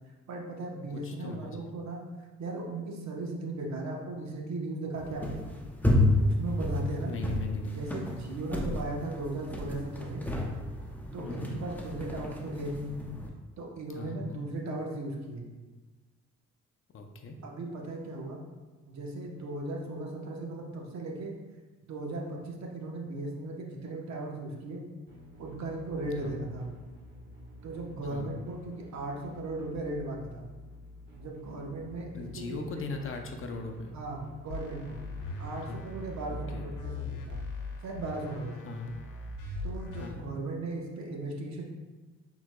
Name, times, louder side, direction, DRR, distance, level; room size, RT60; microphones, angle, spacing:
voice 1, 0.3-2.0 2.4-5.4 6.2-7.1 7.7-10.3 11.1-12.9 13.6-15.5 17.4-18.4 18.9-21.4 21.9-24.8 25.4-26.7 27.6-30.5 31.2-32.8 33.9-35.0 35.4-37.4 37.8-38.7 39.6-41.6, right 2 dB, 65° right, 0 dB, 1.0 m, -37 dB
voice 2, 0.9-1.6 7.0-7.9 8.5-8.8 11.2-11.6 13.9-14.4 16.9-17.4 26.2-26.4 28.0-28.3 32.1-33.9 35.7-35.8 36.3-36.7 38.6-38.9 40.0-40.3, left 3 dB, 45° left, 4 dB, 0.6 m, -39 dB
sound 1, 5.0-13.3, left 1 dB, 5° left, 0.6 m, -31 dB
sound 2, 25.1-37.1, left 1 dB, 35° right, 1.2 m, -50 dB
sound 3, 34.5-40.1, left 2 dB, 85° left, 0.8 m, -39 dB
6.0 x 3.8 x 2.2 m, 1.3 s
cardioid pair, 90°, 30 cm